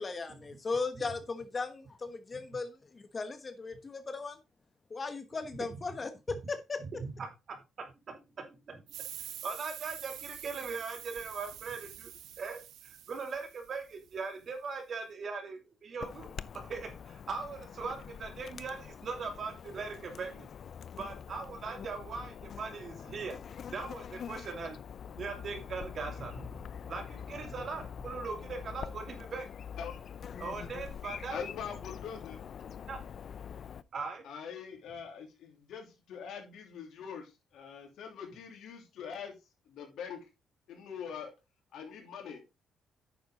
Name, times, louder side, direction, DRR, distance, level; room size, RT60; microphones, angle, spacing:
voice 1, 0.0-4.4 4.9-6.8, left 4 dB, 35° left, 9 dB, 1.2 m, -37 dB
voice 2, 7.0-7.3 7.8-8.8 9.4-12.1 12.4-20.5 21.0-23.4 23.7-24.8 25.2-29.5 30.4-31.4 32.9-33.0 33.9-34.2, right 4 dB, 50° right, 5 dB, 2.8 m, -40 dB
sound 1, 8.9-14.2, right 11 dB, 80° right, 0.9 m, -46 dB
Chirp tweet / Buzz, 16.0-33.8, left 7 dB, 55° left, 0.5 m, -45 dB
voice 3, 31.3-32.4 34.2-39.3 39.7-40.2 40.7-41.3 41.7-42.4, left 7 dB, 80° left, 3 dB, 3.0 m, -43 dB
9.2 x 6.8 x 3.8 m, 0.26 s
cardioid pair, 90°, 0 cm